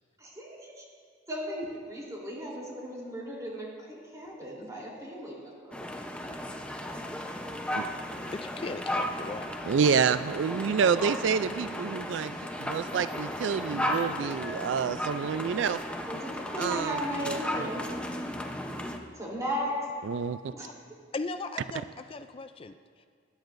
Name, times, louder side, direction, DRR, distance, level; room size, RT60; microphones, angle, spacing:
voice 1, 0.2-0.8 1.3-5.8 16.1-17.9 19.1-19.8 20.5-20.7, equal, 20° right, -4 dB, 3.4 m, -36 dB
sound 1, 5.7-19.0, left 1 dB, 5° left, 0.8 m, -35 dB
voice 2, 8.3-9.5 20.6-20.7 21.1-23.1, left 3 dB, 30° left, 10 dB, 0.4 m, -38 dB
voice 3, 9.6-15.8 16.6-17.0 17.3-17.7 20.0-20.5, right 6 dB, 75° right, 13 dB, 0.4 m, -28 dB
21.5 x 10.5 x 2.6 m, 2.1 s
head